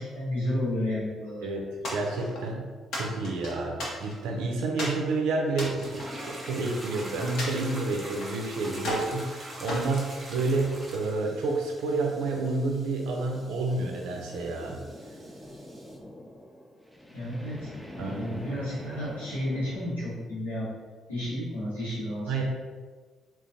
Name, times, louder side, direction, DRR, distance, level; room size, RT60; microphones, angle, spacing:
voice 1, 0.0-1.5 17.1-20.7 21.1-22.4, left 1 dB, 85° left, -11 dB, 1.1 m, -32 dB
sound 1, 1.8-2.5 2.9-4.3 4.8-5.0 5.5-6.8 7.4-8.4 8.8-9.2 9.7-10.7, left 1 dB, 60° left, 0.8 m, -36 dB
voice 2, 1.9-14.8 18.0-18.4 22.3-22.4, right 3 dB, 65° right, 0 dB, 0.5 m, -29 dB
sound 2, 5.8-16.0, right 1 dB, 20° right, 0.8 m, -44 dB
sound 3, 12.8-19.9, equal, 5° left, 0.5 m, -45 dB
3.8 x 2.4 x 2.7 m, 1.4 s
figure-of-eight pair, 40°, 0 cm